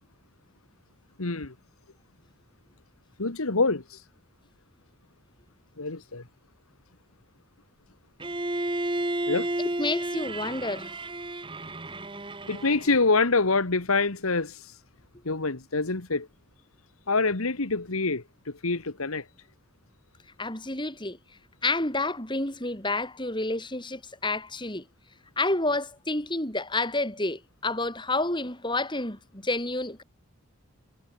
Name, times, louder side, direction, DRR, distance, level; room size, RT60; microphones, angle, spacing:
voice 1, 1.2-1.5 3.2-4.0 5.8-6.2 9.3-9.5 12.5-14.7 15.3-16.3 17.1-19.3, left 3 dB, 85° left, 1.8 m, -26 dB
Bowed string instrument, 8.2-13.1, right 1 dB, 25° right, 1.8 m, -32 dB
voice 2, 9.8-10.9 20.4-21.2 21.6-24.8 25.4-30.0, left 2 dB, 20° left, 5.1 m, -29 dB
head